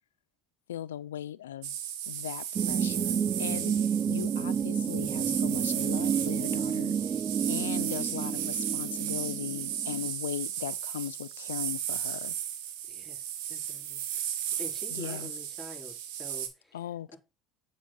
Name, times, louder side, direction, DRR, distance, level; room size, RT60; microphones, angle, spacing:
voice 1, 0.7-1.8 2.1-7.0 7.5-12.4 14.9-15.3 16.7-17.2, left 11 dB, 90° left, 0.4 m, -38 dB
sound 1, 1.6-16.5, right 10 dB, 75° right, 1.1 m, -35 dB
sound 2, 2.5-10.1, right 7 dB, 40° right, 0.6 m, -30 dB
voice 2, 12.9-17.2, left 1 dB, ahead, 4.3 m, -47 dB
7.3 x 6.1 x 2.4 m
hypercardioid pair, 70°, 0 cm